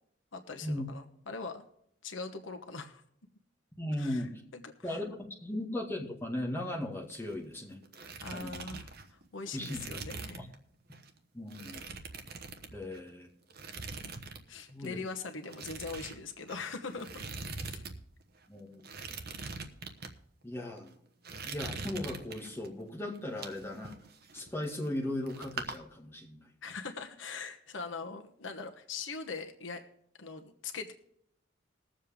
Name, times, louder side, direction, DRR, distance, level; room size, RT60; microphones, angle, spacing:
voice 1, 0.3-1.6 2.0-3.0 4.0-4.3 4.5-5.0 8.2-10.4 14.5-17.2 17.7-17.8 26.6-29.8 30.2-30.9, left 4 dB, 80° left, 5 dB, 1.1 m, -41 dB
voice 2, 3.8-4.3 4.8-7.8 8.3-8.6 9.5-9.8 10.4-10.5 11.3-11.8 12.7-13.3 14.7-15.0 18.5-18.8 19.1-19.2 20.4-20.9 21.4-23.9 24.3-26.5, left 1 dB, 15° left, -2 dB, 2.1 m, -37 dB
sound 1, 7.0-7.6 7.8-10.6 10.9-11.1 11.5-13.1 13.5-14.4 14.7-14.9 15.5-18.0 18.2-18.3 18.8-20.1 20.7-20.9 21.2-22.7 23.1-25.0 25.3-25.8, right 4 dB, 55° right, 1.1 m, -43 dB
20.5 x 7.5 x 3.6 m, 0.70 s
head